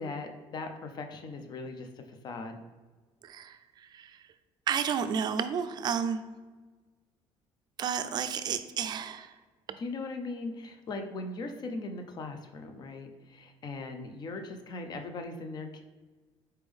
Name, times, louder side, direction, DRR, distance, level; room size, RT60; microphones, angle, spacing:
voice 1, 0.0-2.6 9.8-15.8, left 3 dB, 40° left, 6 dB, 0.5 m, -39 dB
voice 2, 3.2-3.6 3.9-4.1 4.7-6.2 7.8-9.3, right 7 dB, 40° right, 10 dB, 0.3 m, -31 dB
4.3 x 3.4 x 3.5 m, 1.3 s
cardioid pair, 130°, 11 cm